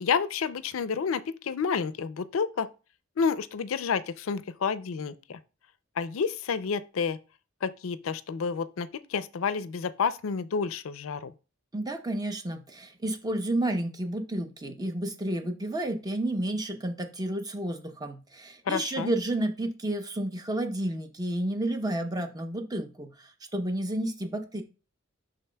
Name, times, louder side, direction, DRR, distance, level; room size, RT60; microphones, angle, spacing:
voice 1, 0.0-2.7 3.2-5.4 6.0-7.2 7.6-11.3 18.7-19.1, left 6 dB, 80° left, 0.4 m, -30 dB
voice 2, 11.7-24.6, right 1 dB, 20° right, 0.8 m, -31 dB
11.0 x 3.9 x 2.2 m
head